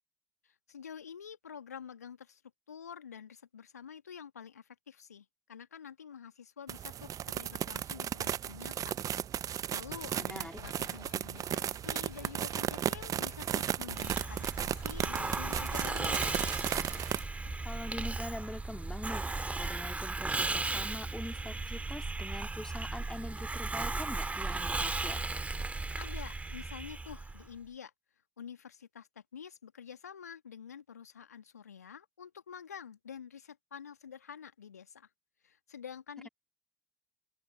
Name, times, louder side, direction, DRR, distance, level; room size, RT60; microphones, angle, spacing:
voice 1, 0.4-2.4 2.7-8.9 9.4-16.5 25.8-27.9 28.4-35.1 35.4-36.3, left 7 dB, 80° left, 1.7 m, -48 dB
sound 1, 6.7-17.2, right 10 dB, 45° right, 0.8 m, -35 dB
Writing, 9.8-19.2, left 21 dB, 60° left, 5.4 m, -56 dB
voice 2, 10.2-10.6 17.6-19.2 19.6-25.2, left 1 dB, 5° left, 2.4 m, -43 dB
Hiss, 14.0-27.5, right 3 dB, 15° right, 1.9 m, -36 dB
open air
figure-of-eight pair, 55°, 8 cm